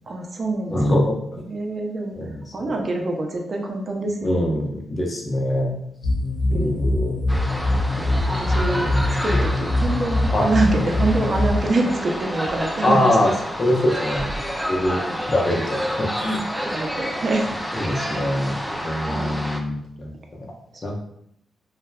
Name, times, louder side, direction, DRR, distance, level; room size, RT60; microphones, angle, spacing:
voice 1, 0.1-0.8 1.5-4.3 6.5-6.9 7.9-13.0 15.0-15.2 16.7-17.5 18.1-18.3 19.1-19.3 20.7-20.8, right 2 dB, 50° right, 2 dB, 0.5 m, -26 dB
voice 2, 0.7-1.4 2.1-2.7 4.2-5.8 6.5-7.2 8.8-9.4 10.3-10.5 12.8-13.3 13.6-14.3 14.7-16.4 17.7-18.5 18.8-20.5 20.8-21.0, left 1 dB, 45° left, 0 dB, 0.6 m, -23 dB
sound 1, 6.0-11.5, left 1 dB, 80° left, 0.9 m, -22 dB
sound 2, 7.3-19.6, equal, ahead, 0.4 m, -29 dB
3.2 x 2.1 x 2.2 m, 0.72 s
supercardioid pair, 55°, 0 cm